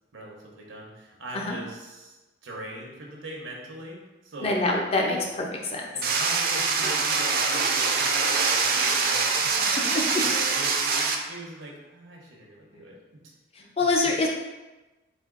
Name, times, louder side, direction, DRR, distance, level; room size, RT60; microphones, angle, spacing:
voice 1, 0.1-4.6 5.9-9.5 10.2-13.0, right 1 dB, 85° right, -1 dB, 0.9 m, -41 dB
voice 2, 4.4-5.9 9.9-10.2 13.5-14.3, left 2 dB, 30° left, 0 dB, 0.6 m, -25 dB
sound 1, 6.0-11.2, right 4 dB, 50° right, 0.4 m, -24 dB
4.2 x 2.7 x 3.7 m, 1.1 s
head